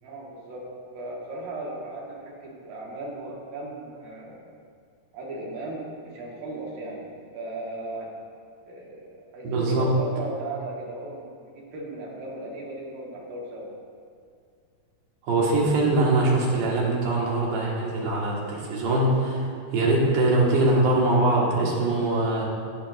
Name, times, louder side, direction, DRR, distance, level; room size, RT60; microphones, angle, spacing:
voice 1, 0.0-0.7 0.9-4.4 5.1-8.1 8.6-13.7, right 2 dB, 65° right, -3 dB, 3.0 m, -37 dB
voice 2, 9.4-9.9 15.2-22.5, right 2 dB, 85° right, -4 dB, 3.6 m, -22 dB
17.5 x 7.0 x 2.5 m, 2.2 s
omnidirectional pair, 4.5 m